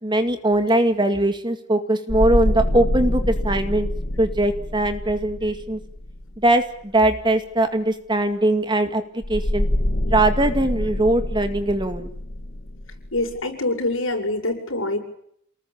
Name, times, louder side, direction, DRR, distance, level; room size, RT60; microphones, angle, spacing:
voice 1, 0.0-3.9 4.2-5.8 6.4-9.7 10.1-12.1, right 1 dB, 20° right, 9 dB, 2.1 m, -21 dB
sound 1, 2.1-6.5 9.2-13.4, left 1 dB, 50° left, 1.8 m, -26 dB
voice 2, 13.1-15.0, left 2 dB, 65° left, 4 dB, 7.7 m, -25 dB
29.0 x 20.5 x 8.8 m, 0.69 s
head